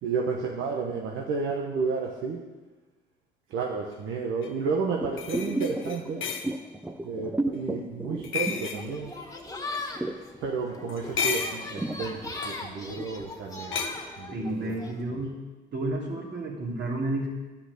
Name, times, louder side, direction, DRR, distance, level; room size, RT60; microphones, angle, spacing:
voice 1, 0.0-2.4 3.5-6.2 7.0-9.1 10.4-13.8 14.2-15.2, right 5 dB, 90° right, -1 dB, 1.2 m, -32 dB
sound 1, 4.4-4.5 5.2-6.5 8.2-8.8 10.9-11.7 12.3-12.6 13.7-13.9, left 6 dB, 75° left, 1.1 m, -31 dB
sound 2, 5.0-9.4 9.7-13.2 13.6-13.7, right 2 dB, 5° right, 0.7 m, -34 dB
sound 3, 8.7-15.0, left 2 dB, 15° left, 1.7 m, -40 dB
voice 2, 14.3-15.4 15.7-17.3, right 2 dB, 60° right, -3 dB, 3.3 m, -31 dB
11.0 x 5.9 x 8.4 m, 1.2 s
cardioid pair, 90°, 20 cm